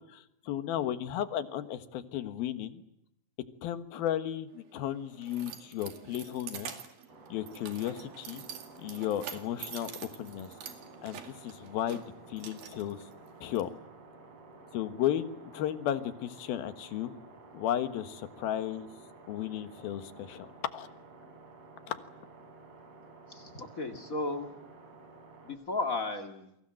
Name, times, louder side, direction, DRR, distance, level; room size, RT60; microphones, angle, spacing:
voice 1, 0.1-2.8 3.6-6.7 7.3-8.4 8.8-10.5 11.0-13.0 13.4-13.7 14.7-17.1 17.5-18.9 19.3-20.5 20.7-20.9 21.9-22.0, left 11 dB, 90° left, 11 dB, 3.3 m, -34 dB
Keys jangling, 4.5-13.6, right 8 dB, 80° right, 4.1 m, -46 dB
sound 1, 7.1-25.5, right 3 dB, 45° right, 6.0 m, -53 dB
voice 2, 23.3-24.5 25.4-26.5, left 2 dB, 30° left, 6 dB, 2.0 m, -34 dB
29.0 x 23.5 x 7.7 m, 0.80 s
omnidirectional pair, 4.1 m